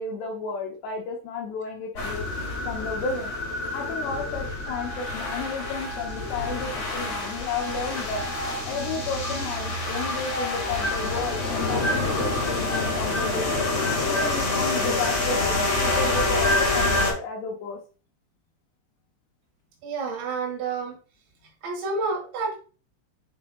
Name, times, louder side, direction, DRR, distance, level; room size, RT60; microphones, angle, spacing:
voice 1, 0.0-2.2 2.7-3.3 3.7-8.2 8.7-13.7 14.1-17.8, left 4 dB, 75° left, 1 dB, 2.7 m, -32 dB
sound 1, 2.0-17.1, left 2 dB, 45° left, 2.3 m, -27 dB
sound 2, 4.7-12.3, right 6 dB, 30° right, 2.0 m, -42 dB
voice 2, 19.8-21.0 21.6-22.6, right 4 dB, 70° right, 2 dB, 3.8 m, -29 dB
7.8 x 5.5 x 2.3 m, 0.35 s
omnidirectional pair, 5.6 m